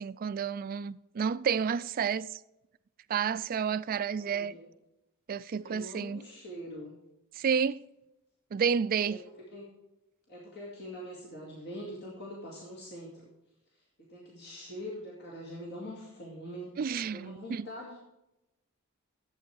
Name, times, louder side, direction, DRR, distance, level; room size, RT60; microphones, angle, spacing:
voice 1, 0.0-2.4 3.1-4.6 5.3-6.2 7.3-7.8 8.5-9.2 16.8-17.7, right 6 dB, 40° right, 0.3 m, -30 dB
voice 2, 4.2-4.7 5.6-7.0 9.0-9.7 10.3-13.2 14.0-18.0, equal, 50° left, 2.2 m, -44 dB
11.0 x 8.1 x 4.6 m
head